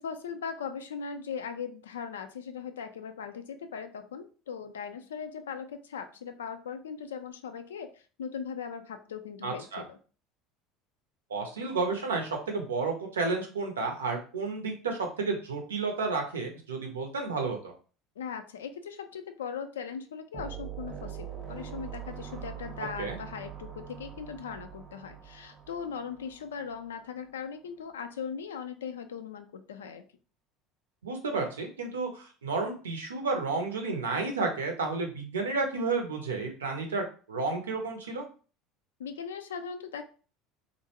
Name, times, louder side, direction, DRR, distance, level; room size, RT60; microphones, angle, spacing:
voice 1, 0.0-10.0 18.2-30.1 39.0-40.0, left 6 dB, 80° left, 9 dB, 0.3 m, -39 dB
voice 2, 9.4-9.8 11.3-17.7 23.0-23.2 31.0-38.3, right 3 dB, 85° right, 3 dB, 0.6 m, -31 dB
sound 1, 20.3-26.8, right 9 dB, 40° right, 0.7 m, -43 dB
2.5 x 2.1 x 2.8 m, 0.38 s
hypercardioid pair, 70°, 0 cm